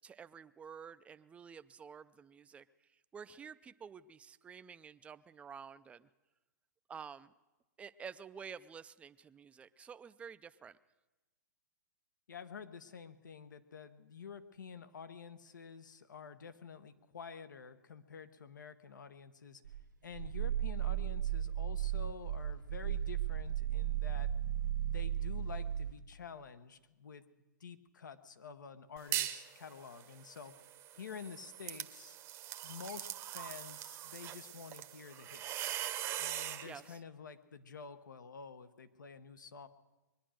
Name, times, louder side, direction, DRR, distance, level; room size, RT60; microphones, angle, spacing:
voice 1, 0.0-2.6 3.1-6.1 6.9-7.3 7.8-10.8 36.6-37.0, right 6 dB, 10° right, 13 dB, 0.4 m, -50 dB
voice 2, 12.3-19.6 20.0-24.3 24.8-27.2 27.6-30.6 30.9-32.2 32.6-35.7 36.2-39.7, left 6 dB, 80° left, 11 dB, 1.1 m, -49 dB
Growling, 19.6-26.0, right 11 dB, 85° right, 0.9 m, -35 dB
sound 1, 29.0-29.5 29.9-36.7, right 12 dB, 30° right, 0.9 m, -41 dB
22.0 x 10.0 x 6.4 m, 1.1 s
hypercardioid pair, 130°, 10 cm